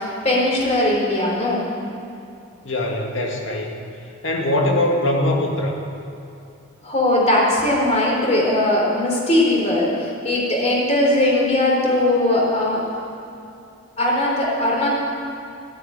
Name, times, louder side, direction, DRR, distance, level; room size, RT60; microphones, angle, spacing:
voice 1, 0.0-1.6 6.8-12.8 14.0-14.9, left 1 dB, 35° left, -3 dB, 3.7 m, -19 dB
voice 2, 2.6-3.8 4.2-5.8, left 1 dB, 85° left, 1 dB, 2.1 m, -21 dB
13.5 x 9.5 x 8.8 m, 2.7 s
head